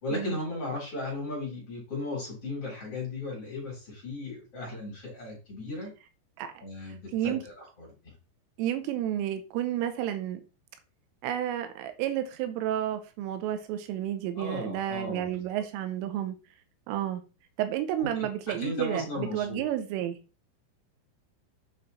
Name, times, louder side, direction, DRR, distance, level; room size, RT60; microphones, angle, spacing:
voice 1, 0.0-5.9 6.6-8.1 14.3-15.4 18.0-18.1 18.5-19.6, left 2 dB, 30° left, 3.9 m, -36 dB
voice 2, 7.1-7.4 8.6-10.4 11.2-16.4 16.9-17.2 17.6-20.2, right 11 dB, 85° right, 3.2 m, -31 dB
8.5 x 4.9 x 4.1 m
omnidirectional pair, 5.9 m